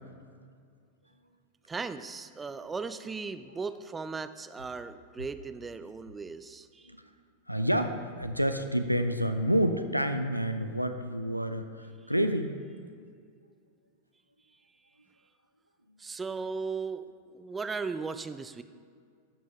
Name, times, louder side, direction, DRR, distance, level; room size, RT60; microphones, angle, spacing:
voice 1, 1.7-6.9 16.0-18.6, right 4 dB, 15° right, 11 dB, 0.4 m, -37 dB
voice 2, 7.5-11.7 12.1-12.6, equal, 90° right, 8 dB, 0.5 m, -28 dB
13.0 x 6.2 x 3.3 m, 2.2 s
figure-of-eight pair, 90°, 0 cm